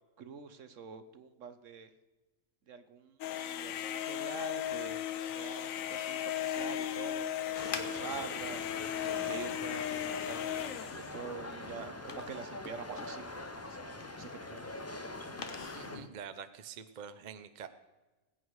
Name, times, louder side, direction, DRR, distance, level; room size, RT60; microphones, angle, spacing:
voice 1, 0.2-1.9 2.7-8.7 8.9-14.8, right 6 dB, 65° right, 10 dB, 1.2 m, -46 dB
sound 1, 3.2-11.2, left 11 dB, 70° left, 1.1 m, -36 dB
sound 2, 7.5-16.1, left 4 dB, 40° left, 1.1 m, -48 dB
sound 3, 7.6-16.0, left 2 dB, 20° left, 0.4 m, -44 dB
voice 2, 15.7-17.7, right 7 dB, 40° right, 11 dB, 0.7 m, -46 dB
19.5 x 8.5 x 4.7 m, 1.2 s
omnidirectional pair, 1.5 m